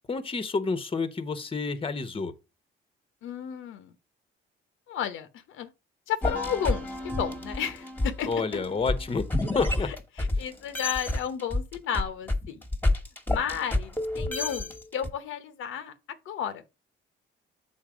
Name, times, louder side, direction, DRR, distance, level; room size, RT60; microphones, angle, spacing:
voice 1, 0.1-2.3 8.3-9.2 9.5-9.9, left 4 dB, 25° left, 1.0 m, -29 dB
voice 2, 3.2-3.9 4.9-5.7 6.1-8.3 9.8-12.6 13.3-15.9 16.2-16.7, left 9 dB, 85° left, 1.0 m, -33 dB
sound 1, 6.2-10.4 10.7-15.1, left 2 dB, 10° left, 1.4 m, -29 dB
7.3 x 4.1 x 5.0 m
cardioid pair, 90°, 20 cm